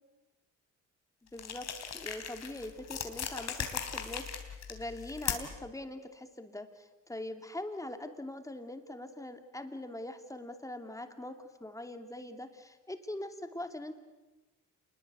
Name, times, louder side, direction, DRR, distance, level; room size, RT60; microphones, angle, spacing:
sound 1, 1.3-5.7, left 7 dB, 60° left, 3.5 m, -38 dB
voice 1, 1.3-1.7 1.9-13.9, left 1 dB, 10° left, 6 dB, 2.7 m, -42 dB
27.5 x 21.5 x 8.3 m, 1.1 s
cardioid pair, 90°, 30 cm